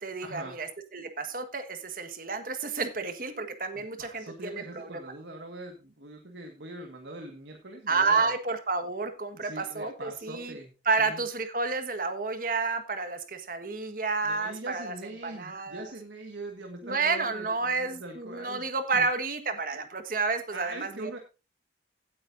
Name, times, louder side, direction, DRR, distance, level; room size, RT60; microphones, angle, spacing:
voice 1, 0.0-5.1 7.9-10.6 10.8-15.9 16.8-21.2, right 4 dB, 50° right, 8 dB, 1.6 m, -30 dB
voice 2, 3.7-8.3 9.4-10.7 11.0-11.2 14.2-18.6 18.9-19.0 20.5-21.2, right 2 dB, 85° right, 3 dB, 1.8 m, -42 dB
17.0 x 8.6 x 2.7 m, 0.29 s
head